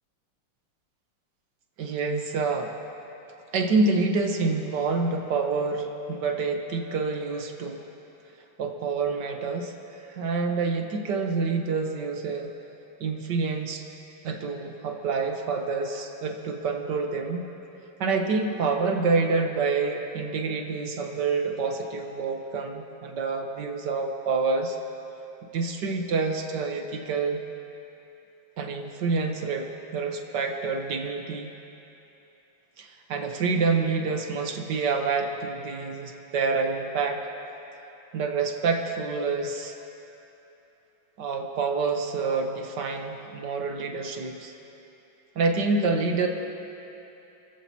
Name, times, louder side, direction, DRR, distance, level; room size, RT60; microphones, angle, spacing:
voice 1, 1.8-2.7 3.5-7.8 8.6-9.7 10.1-12.5 13.0-13.8 14.2-17.5 18.0-24.8 25.5-27.4 28.6-31.5 32.8-37.2 38.1-39.7 41.2-44.5 45.3-46.3, right 4 dB, 60° right, 3 dB, 1.7 m, -27 dB
30.0 x 14.5 x 2.9 m, 3.0 s
omnidirectional pair, 2.4 m